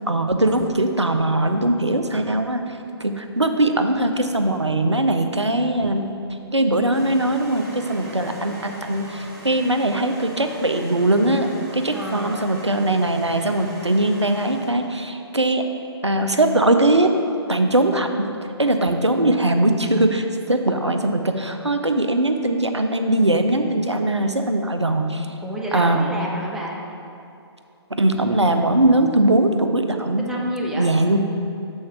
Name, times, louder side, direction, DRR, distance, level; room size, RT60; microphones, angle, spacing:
voice 1, 0.1-2.6 3.0-6.1 6.5-15.6 16.0-17.2 17.5-18.1 18.6-25.3 25.7-26.0 27.9-30.3 30.8-31.2, right 1 dB, 90° right, 6 dB, 0.6 m, -20 dB
sound 1, 6.9-15.0, right 1 dB, 40° right, 1.2 m, -40 dB
voice 2, 11.9-12.5 25.4-26.8 30.2-30.9, right 1 dB, 5° right, -3 dB, 0.5 m, -29 dB
6.5 x 4.3 x 5.8 m, 2.6 s
figure-of-eight pair, 130°, 14 cm